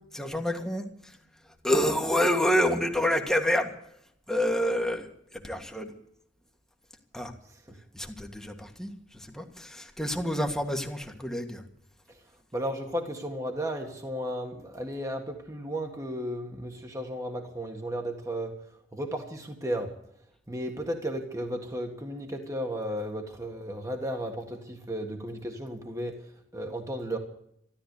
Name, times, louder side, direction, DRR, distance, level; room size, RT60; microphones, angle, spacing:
voice 1, 0.1-1.1 1.6-3.7 4.3-5.1 5.3-5.9 7.1-7.3 7.9-8.9 9.3-11.6, equal, 5° left, 2 dB, 1.8 m, -27 dB
voice 2, 12.5-18.5 18.9-19.9 20.5-26.2 26.5-27.2, equal, 20° right, 3 dB, 1.8 m, -34 dB
13.5 x 12.5 x 8.3 m, 0.73 s
head